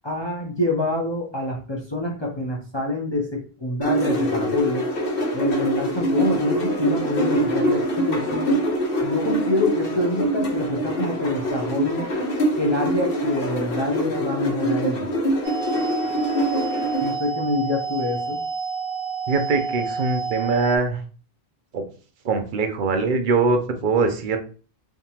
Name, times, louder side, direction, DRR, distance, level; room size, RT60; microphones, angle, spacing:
voice 1, 0.0-4.8 5.3-8.6 9.0-12.1 12.6-15.1 17.0-18.4, left 2 dB, 30° left, -2 dB, 0.6 m, -26 dB
sound 1, 3.8-17.1, right 1 dB, 60° left, 1.0 m, -24 dB
sound 2, 15.4-20.8, right 5 dB, 75° right, 1.2 m, -29 dB
voice 2, 19.3-21.0 21.7-21.9 22.2-24.4, right 4 dB, 55° right, 6 dB, 0.8 m, -22 dB
3.5 x 2.9 x 2.8 m, 0.38 s
omnidirectional pair, 1.1 m